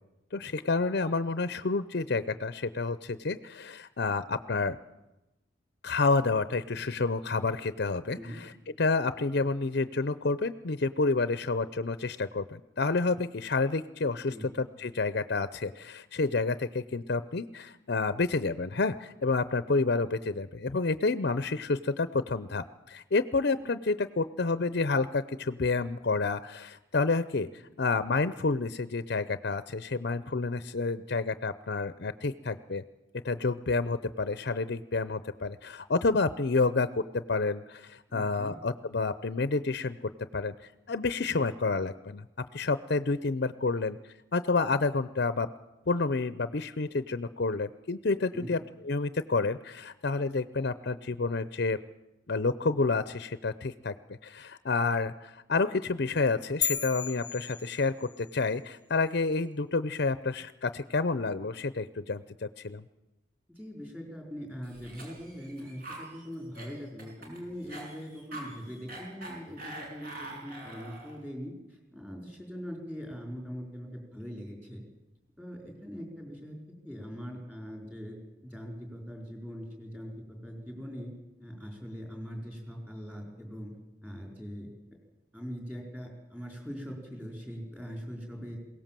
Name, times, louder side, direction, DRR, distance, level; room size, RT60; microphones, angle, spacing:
voice 1, 0.3-4.8 5.8-8.5 8.8-32.8 33.2-37.0 37.3-40.0 40.3-40.5 40.9-42.2 42.5-44.0 44.3-45.5 45.9-48.6 48.8-51.8 52.3-53.9 54.2-62.8, left 3 dB, 60° left, 14 dB, 0.7 m, -29 dB
voice 2, 38.1-38.5 48.3-48.5 63.5-74.8 75.4-76.6 76.8-81.1 81.4-83.7 84.0-84.7 85.3-88.6, equal, 10° right, 1 dB, 4.6 m, -42 dB
sound 1, 56.6-58.3, left 7 dB, 25° left, 0.8 m, -34 dB
Cough, 64.6-71.2, right 2 dB, 50° right, 5.8 m, -44 dB
22.0 x 17.5 x 7.6 m, 0.97 s
head